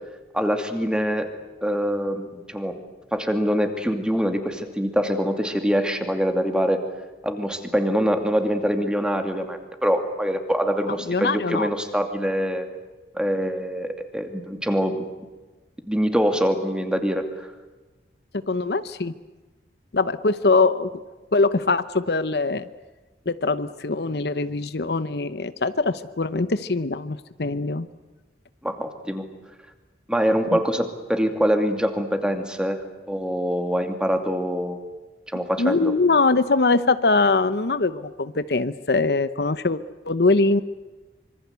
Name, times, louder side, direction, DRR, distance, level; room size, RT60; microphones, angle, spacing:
voice 1, 0.3-1.3 1.6-2.8 3.1-6.8 7.2-12.7 13.1-15.1 15.9-17.5 28.6-29.2 30.1-32.8 33.1-34.8 35.3-35.9, equal, 5° right, 6 dB, 2.5 m, -24 dB
voice 2, 11.1-11.7 18.3-19.1 19.9-20.9 21.3-22.7 23.3-27.9 35.6-40.6, left 3 dB, 65° left, 13 dB, 0.9 m, -22 dB
26.0 x 24.5 x 8.2 m, 1.2 s
head